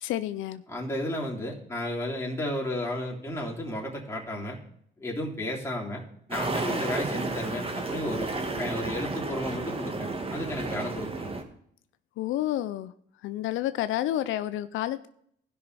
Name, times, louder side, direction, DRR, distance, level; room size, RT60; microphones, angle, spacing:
voice 1, 0.0-0.6 12.2-12.9 13.2-15.1, left 13 dB, 85° left, 13 dB, 0.5 m, -30 dB
voice 2, 0.7-4.6 5.0-6.0 6.3-11.3, left 1 dB, 15° left, -3 dB, 3.4 m, -33 dB
sound 1, 6.3-11.4, right 3 dB, 30° right, 1.7 m, -32 dB
16.5 x 5.8 x 4.1 m, 0.67 s
cardioid pair, 90°, 20 cm